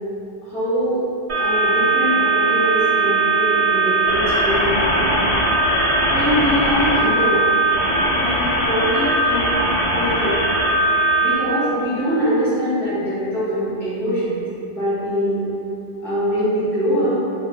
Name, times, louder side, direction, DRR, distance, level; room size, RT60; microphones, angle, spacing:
voice 1, 0.4-1.0 1.3-5.1 6.1-7.5 8.2-9.4 10.0-10.4 11.2-14.4 14.8-15.4 16.0-17.2, equal, 5° left, -13 dB, 0.4 m, -23 dB
sound 1, 1.3-11.3, right 2 dB, 85° right, 0.9 m, -19 dB
2.1 x 2.0 x 3.3 m, 2.8 s
omnidirectional pair, 1.1 m